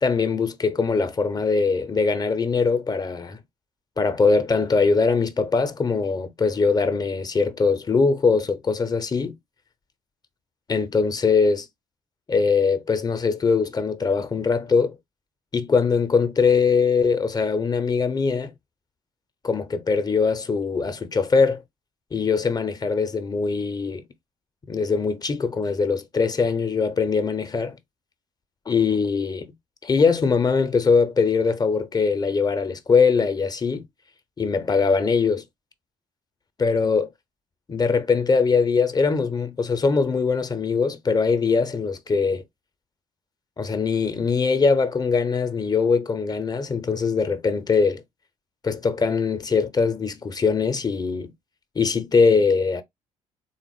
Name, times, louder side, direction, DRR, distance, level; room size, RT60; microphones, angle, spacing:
voice 1, 0.0-3.4 4.0-9.4 10.7-11.7 12.3-14.9 15.5-18.5 19.4-21.6 22.1-24.0 24.7-27.8 28.7-29.5 29.8-33.8 34.4-35.4 36.6-37.1 37.7-42.4 43.6-48.0 48.6-51.3 51.8-52.8, left 5 dB, 25° left, 0.5 m, -22 dB
3.5 x 2.1 x 3.2 m
figure-of-eight pair, 45°, 17 cm